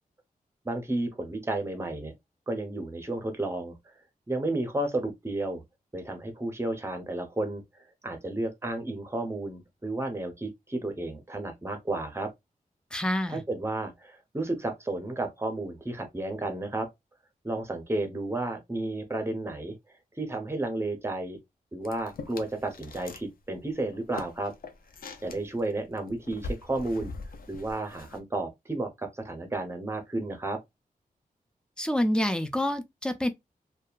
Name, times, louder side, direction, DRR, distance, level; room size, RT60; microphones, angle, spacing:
voice 1, 0.6-2.1 2.5-3.8 4.3-5.6 5.9-7.6 8.0-12.3 13.3-16.9 17.4-19.8 20.2-21.4 21.7-24.5 25.2-27.1 27.5-30.6, right 2 dB, 15° right, 0.8 m, -32 dB
voice 2, 12.9-13.4 31.8-33.3, left 1 dB, 5° left, 0.4 m, -27 dB
sound 1, 21.8-23.3 23.6-28.2, left 3 dB, 75° left, 0.5 m, -42 dB
2.7 x 2.3 x 2.3 m
wide cardioid pair, 100°, 15 cm